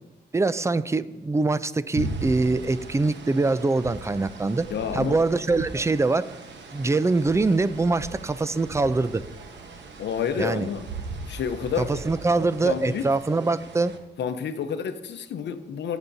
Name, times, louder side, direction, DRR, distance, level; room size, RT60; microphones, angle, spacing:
voice 1, 0.3-4.7 4.9-6.3 6.7-9.2 10.4-10.7 11.8-13.9, right 3 dB, 15° right, 0.4 m, -23 dB
sound 1, 1.9-14.0, right 4 dB, 85° right, 1.1 m, -38 dB
voice 2, 4.7-5.2 10.0-10.9 11.3-11.9 12.6-13.1 14.2-16.0, left 7 dB, 80° left, 0.8 m, -29 dB
17.0 x 7.1 x 2.7 m
cardioid pair, 80°, 18 cm